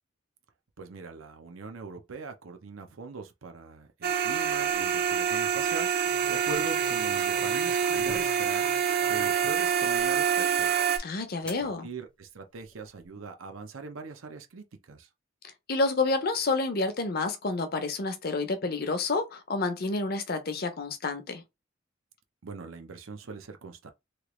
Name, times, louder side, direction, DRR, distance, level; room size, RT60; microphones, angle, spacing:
voice 1, 0.8-8.7 9.1-10.8 11.4-15.1 22.4-23.9, right 4 dB, 90° right, 0.7 m, -41 dB
sound 1, 4.0-11.0, right 8 dB, 50° right, 0.5 m, -26 dB
sound 2, 4.3-4.7 6.0-9.3 9.9-10.0 11.5-11.7 12.6-13.1, left 2 dB, 5° left, 0.5 m, -47 dB
voice 2, 11.0-11.9 15.7-21.4, left 3 dB, 50° left, 0.6 m, -29 dB
3.2 x 2.4 x 3.1 m
head